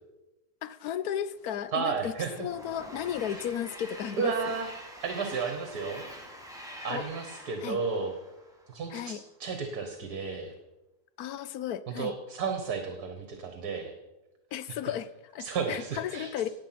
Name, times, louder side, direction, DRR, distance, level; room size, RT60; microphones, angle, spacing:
voice 1, 0.6-2.1 2.4-4.5 6.9-7.1 7.6-7.8 8.9-9.2 11.2-12.1 14.5-16.5, left 10 dB, 70° left, 15 dB, 1.1 m, -34 dB
Train, 1.5-9.0, equal, ahead, 2.3 m, -46 dB
voice 2, 1.7-2.5 4.2-6.0 6.8-8.1 8.7-10.5 11.9-13.9 15.4-16.5, right 5 dB, 65° right, 6 dB, 1.8 m, -33 dB
18.5 x 7.6 x 5.8 m, 1.0 s
omnidirectional pair, 1.8 m